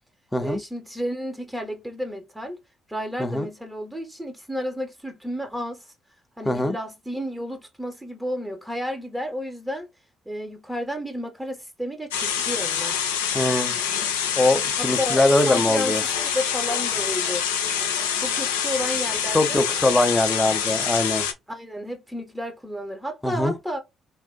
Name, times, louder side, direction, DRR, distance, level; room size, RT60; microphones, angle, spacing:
voice 1, 0.4-2.6 2.9-5.9 6.4-9.9 10.3-13.1 14.8-15.9 16.2-17.5 17.8-17.9 18.2-19.7 21.5-23.8, equal, 10° right, 1.0 m, -31 dB
voice 2, 6.5-6.8 13.3-13.8 14.4-16.0 19.3-21.3 23.2-23.5, left 1 dB, 15° left, 0.7 m, -22 dB
sound 1, 12.1-21.3, left 8 dB, 80° left, 0.5 m, -26 dB
3.6 x 2.4 x 2.2 m
figure-of-eight pair, 45°, 0 cm